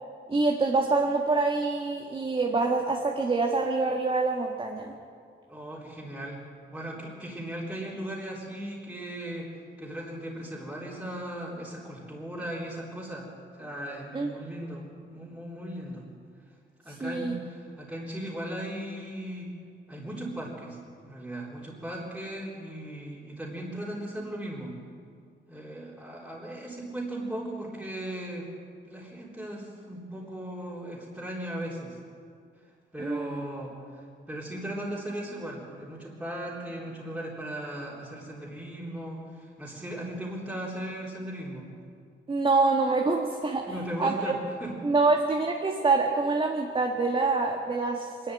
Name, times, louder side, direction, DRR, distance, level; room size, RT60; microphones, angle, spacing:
voice 1, 0.3-4.9 14.1-14.3 17.0-17.4 33.0-33.4 42.3-43.7 44.0-44.4 44.8-48.3, right 3 dB, 30° right, 0 dB, 1.6 m, -26 dB
voice 2, 5.5-6.4 6.7-9.5 9.8-13.3 13.6-16.1 16.8-19.5 19.9-24.8 25.5-28.5 28.8-32.0 32.9-41.7 43.7-44.7, right 1 dB, 5° right, -6 dB, 3.7 m, -37 dB
24.0 x 11.5 x 9.7 m, 2.2 s
wide cardioid pair, 135°, 19 cm